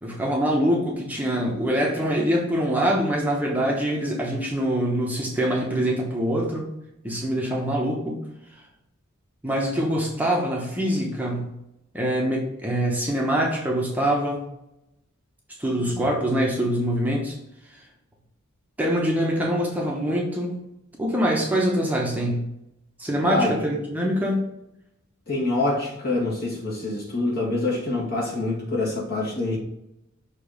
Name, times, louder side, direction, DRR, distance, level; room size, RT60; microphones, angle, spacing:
voice 1, 0.0-6.7 7.0-8.2 9.4-11.5 11.9-14.4 15.6-17.4 17.7-17.8 18.8-20.6 21.0-22.5 23.0-24.4, equal, 10° right, -2 dB, 0.9 m, -24 dB
voice 2, 23.2-23.6 25.3-29.6, left 2 dB, 50° left, -4 dB, 2.1 m, -26 dB
6.7 x 3.0 x 5.0 m, 0.85 s
head